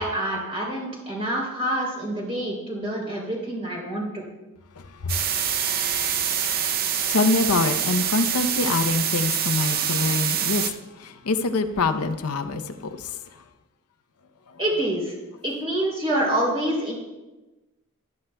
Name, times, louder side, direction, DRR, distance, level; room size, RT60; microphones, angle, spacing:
voice 1, 0.0-4.2 14.6-15.1 15.4-16.9, right 1 dB, 25° right, -2 dB, 3.0 m, -26 dB
sound 1, 5.1-10.7, right 8 dB, 45° right, 0.6 m, -25 dB
voice 2, 7.1-10.7 11.0-13.1, left 3 dB, 80° left, 9 dB, 0.6 m, -25 dB
13.5 x 11.5 x 2.2 m, 1.1 s
head